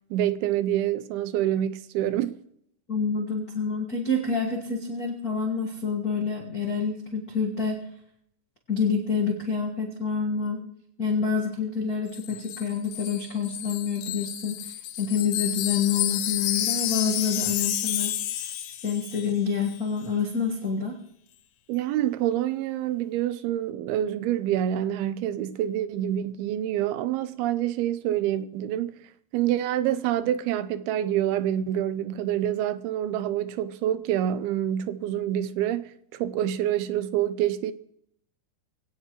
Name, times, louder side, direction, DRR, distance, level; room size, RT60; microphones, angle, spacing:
voice 1, 0.1-2.4 21.7-28.9 29.3-37.7, right 11 dB, 85° right, 2.6 m, -27 dB
voice 2, 2.9-7.8 8.7-10.6 11.0-14.6 15.0-18.2 18.8-20.9, left 5 dB, 65° left, 0.9 m, -27 dB
Wind chime, 12.1-19.4 19.6-19.8, left 12 dB, 80° left, 2.7 m, -30 dB
21.5 x 17.0 x 3.1 m
omnidirectional pair, 4.4 m